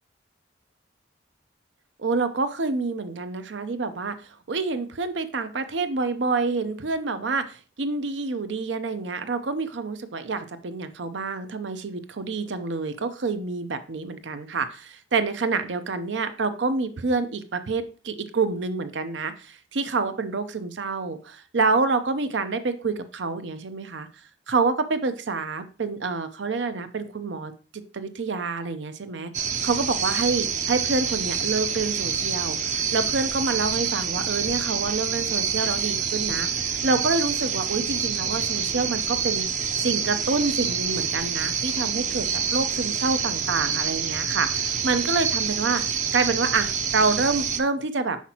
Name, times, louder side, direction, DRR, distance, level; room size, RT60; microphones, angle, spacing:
voice 1, 2.0-24.1 24.5-39.5 39.8-42.3 42.5-45.8 46.1-48.2, right 4 dB, 85° right, 10 dB, 0.7 m, -27 dB
sound 1, 29.3-47.6, right 7 dB, 40° right, 0.6 m, -27 dB
5.8 x 5.8 x 2.9 m, 0.35 s
head